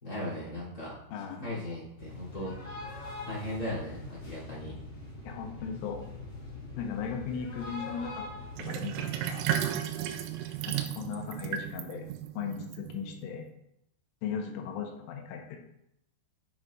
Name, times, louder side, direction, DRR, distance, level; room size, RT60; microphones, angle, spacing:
voice 1, 0.0-1.0 1.4-2.6 3.2-4.7, left 1 dB, 25° left, -7 dB, 2.5 m, -37 dB
voice 2, 1.1-1.5 5.2-6.0 6.7-8.3 8.6-9.5 10.7-12.1 12.4-13.5 14.2-15.6, left 7 dB, 80° left, 2 dB, 3.2 m, -37 dB
sound 1, 2.0-8.6, left 3 dB, 55° left, 0.9 m, -42 dB
Sink (filling or washing), 8.6-13.3, right 10 dB, 80° right, 2.9 m, -34 dB
8.9 x 6.2 x 2.5 m, 0.78 s
omnidirectional pair, 5.8 m